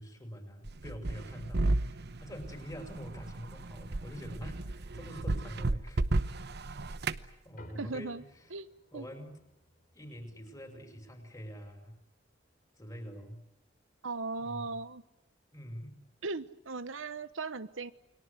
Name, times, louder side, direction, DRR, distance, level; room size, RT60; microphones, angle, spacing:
voice 1, 0.0-8.2 8.9-9.4 9.9-12.0 12.8-13.4 14.4-14.8 15.5-16.0, equal, 20° left, 6 dB, 5.7 m, -46 dB
sound 1, 0.7-7.3, right 2 dB, 60° right, 1.0 m, -33 dB
sound 2, 7.6-12.3, left 1 dB, 50° left, 3.3 m, -59 dB
voice 2, 7.7-8.2 8.5-8.7 8.9-9.1 14.0-15.0 16.2-17.9, right 3 dB, 80° right, 13 dB, 1.1 m, -38 dB
29.5 x 22.5 x 8.3 m, 0.82 s
head